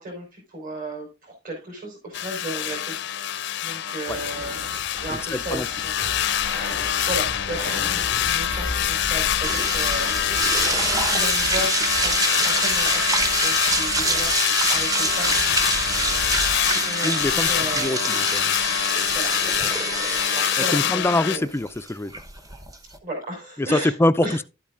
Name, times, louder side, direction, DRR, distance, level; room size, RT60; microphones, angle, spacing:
voice 1, 0.0-4.7 5.0-5.9 6.6-10.5 10.9-14.3 14.7-15.8 16.0-18.0 19.1-19.3 19.7-21.5 23.0-24.0 24.2-24.4, right 1 dB, 50° right, 4.4 m, -35 dB
sound 1, 2.1-21.4, left 11 dB, 65° left, 0.6 m, -25 dB
sound 2, 4.1-17.8, equal, 75° right, 4.2 m, -36 dB
voice 2, 5.1-5.7 17.0-17.5 17.7-18.6 20.7-22.2 23.6-24.4, left 1 dB, 10° left, 0.4 m, -24 dB
sound 3, 9.4-23.0, right 2 dB, 20° right, 0.9 m, -25 dB
12.0 x 8.6 x 2.5 m
head